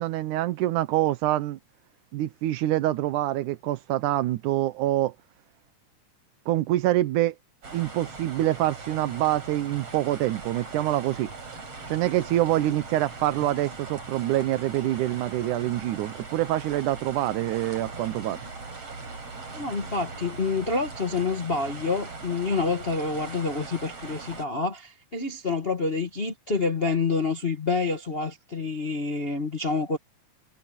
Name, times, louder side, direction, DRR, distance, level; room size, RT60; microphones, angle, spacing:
voice 1, 0.0-1.6 2.1-5.1 6.5-7.4 7.7-11.3 11.9-18.4, right 14 dB, 85° right, 2.3 m, -25 dB
sound 1, 7.6-24.5, right 3 dB, 50° right, 6.4 m, -40 dB
voice 2, 19.5-30.0, left 4 dB, 50° left, 0.7 m, -27 dB
omnidirectional pair, 3.5 m